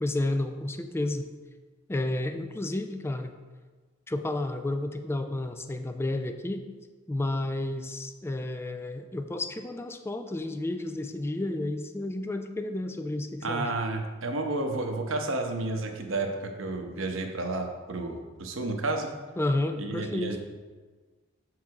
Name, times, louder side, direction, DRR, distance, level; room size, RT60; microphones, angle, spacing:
voice 1, 0.0-1.3 1.9-3.3 4.1-6.7 7.1-13.7 19.4-20.4, left 2 dB, 10° left, 8 dB, 0.4 m, -31 dB
voice 2, 13.4-19.1 19.8-20.4, right 2 dB, 70° right, 4 dB, 0.9 m, -31 dB
7.2 x 4.7 x 4.7 m, 1.4 s
head